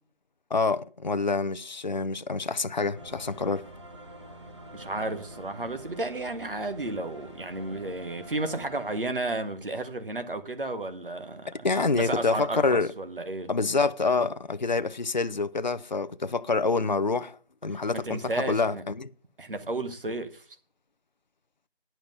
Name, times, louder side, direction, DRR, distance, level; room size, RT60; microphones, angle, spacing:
voice 1, 0.5-3.7 11.6-12.9 13.5-19.1, left 4 dB, 50° left, 0.5 m, -27 dB
sound 1, 2.9-9.0, right 1 dB, 30° right, 1.3 m, -46 dB
voice 2, 4.7-11.7 11.9-13.5 17.7-18.8 19.4-20.4, right 2 dB, 65° right, 1.6 m, -33 dB
10.0 x 5.8 x 7.6 m
figure-of-eight pair, 180°, 29 cm